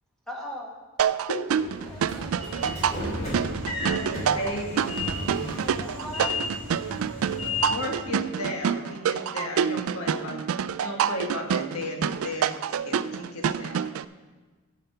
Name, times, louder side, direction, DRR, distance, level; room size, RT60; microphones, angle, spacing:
voice 1, 0.3-0.8 1.6-2.8 5.6-6.4, left 1 dB, ahead, -3 dB, 1.6 m, -40 dB
sound 1, 1.0-14.1, right 7 dB, 75° right, 0.3 m, -27 dB
Train / Sliding door, 1.5-8.0, left 2 dB, 35° left, 3.5 m, -33 dB
voice 2, 2.7-4.9 7.8-8.1, left 2 dB, 65° left, 2 dB, 1.4 m, -48 dB
voice 3, 3.8-5.0 7.7-13.8, left 1 dB, 85° left, 2 dB, 1.6 m, -35 dB
sound 2, 5.0-11.3, right 3 dB, 55° right, 0.7 m, -50 dB
10.5 x 5.7 x 6.7 m, 1.3 s
head